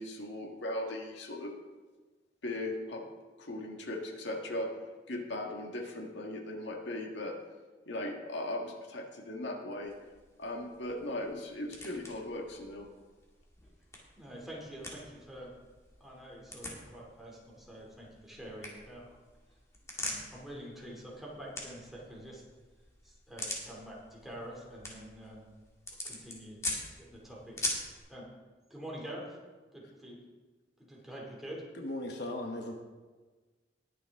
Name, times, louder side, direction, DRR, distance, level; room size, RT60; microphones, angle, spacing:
voice 1, 0.0-1.5 2.4-3.0 3.4-4.7 5.1-7.4 7.9-9.9 10.4-12.9, left 1 dB, 85° left, 1 dB, 1.7 m, -38 dB
sound 1, 9.8-28.0, left 1 dB, 15° left, 2.1 m, -44 dB
voice 2, 14.2-15.5 16.0-19.2 20.0-22.4 23.0-25.5 26.0-26.6 27.0-27.6 28.1-28.3 28.7-29.4 29.7-30.2 30.8-31.6, right 1 dB, ahead, -4 dB, 2.7 m, -46 dB
voice 3, 31.7-32.7, left 1 dB, 65° left, 2 dB, 1.1 m, -37 dB
20.0 x 6.8 x 3.6 m, 1.3 s
head